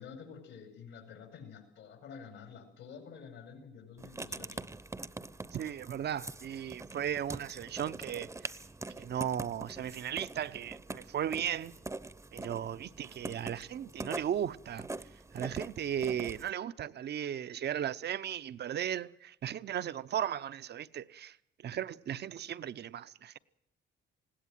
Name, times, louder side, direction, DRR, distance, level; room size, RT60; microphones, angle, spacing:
voice 1, 0.0-4.7, left 6 dB, 85° left, 5.2 m, -49 dB
Writing, 4.0-16.5, right 2 dB, 15° right, 0.8 m, -44 dB
voice 2, 5.5-8.3 9.0-11.8 12.3-14.9 15.3-21.4 21.6-23.4, right 9 dB, 55° right, 0.8 m, -36 dB
20.0 x 16.5 x 9.1 m
cardioid pair, 90°, 20 cm